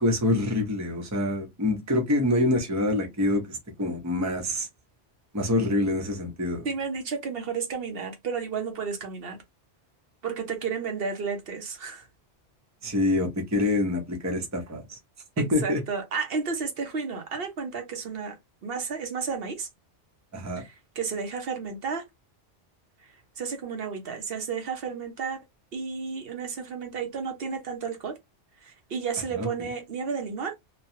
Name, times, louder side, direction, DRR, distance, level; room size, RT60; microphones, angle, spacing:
voice 1, 0.0-4.7 5.3-6.7 12.8-15.0 15.4-15.8 20.3-20.6 29.3-29.5, left 1 dB, 15° right, 0.7 m, -26 dB
voice 2, 6.6-9.4 10.2-12.1 15.4-18.4 18.6-19.7 20.5-22.0 23.4-25.4 25.7-28.2 28.6-30.5, right 5 dB, 60° right, 1.0 m, -32 dB
3.0 x 2.2 x 2.7 m
omnidirectional pair, 1.2 m